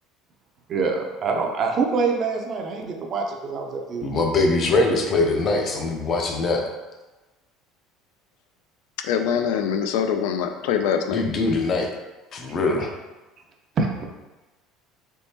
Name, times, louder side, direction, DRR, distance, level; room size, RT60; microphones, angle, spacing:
voice 1, 0.7-4.2 13.8-13.9, right 4 dB, 35° right, 2 dB, 0.4 m, -25 dB
voice 2, 4.0-6.6 11.1-11.9 12.3-12.9, left 3 dB, 30° left, 2 dB, 0.5 m, -22 dB
voice 3, 9.0-11.2, left 7 dB, 90° left, 6 dB, 0.3 m, -23 dB
3.5 x 3.1 x 2.8 m, 1.1 s
cardioid pair, 160°, 0 cm